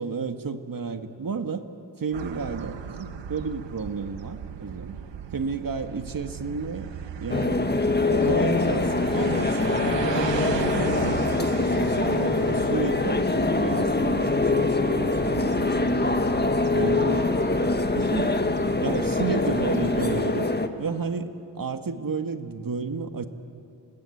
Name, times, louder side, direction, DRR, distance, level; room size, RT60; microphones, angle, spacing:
voice 1, 0.0-1.6 2.0-5.0 5.3-6.9 7.2-7.6 8.1-16.1 16.7-17.3 18.0-18.4 18.8-20.5 20.8-23.3, right 5 dB, 50° right, 7 dB, 1.8 m, -32 dB
sound 1, 2.1-20.2, right 8 dB, 90° right, 1.2 m, -37 dB
sound 2, 7.3-20.7, left 3 dB, 25° left, 1.6 m, -24 dB
27.0 x 20.0 x 8.6 m, 2.5 s
cardioid pair, 55°, 42 cm